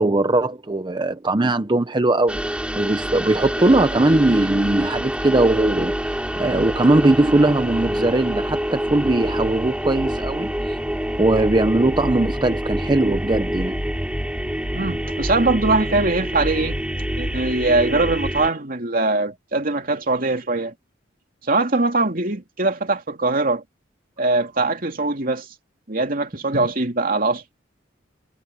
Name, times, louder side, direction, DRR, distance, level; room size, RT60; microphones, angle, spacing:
voice 1, 0.0-10.8 11.2-13.8, right 2 dB, 25° right, 0.7 m, -20 dB
sound 1, 2.3-18.5, equal, 5° right, 2.7 m, -26 dB
voice 2, 14.7-16.8 17.2-20.7 21.5-23.6 24.2-25.5 25.9-27.4, right 2 dB, 50° right, 2.7 m, -21 dB
head